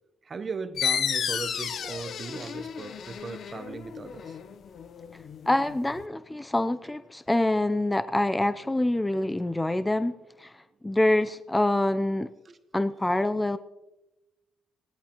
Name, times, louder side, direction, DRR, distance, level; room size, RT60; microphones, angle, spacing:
voice 1, 0.2-4.4 6.8-6.9 12.4-12.6, right 4 dB, 40° right, 0.9 m, -38 dB
sound 1, 0.8-6.0, left 8 dB, 60° left, 0.7 m, -33 dB
voice 2, 5.5-10.1 10.4-10.5 10.8-12.3 12.7-13.6, left 1 dB, 10° left, 0.5 m, -25 dB
23.0 x 17.5 x 3.0 m
cardioid pair, 90°, 0 cm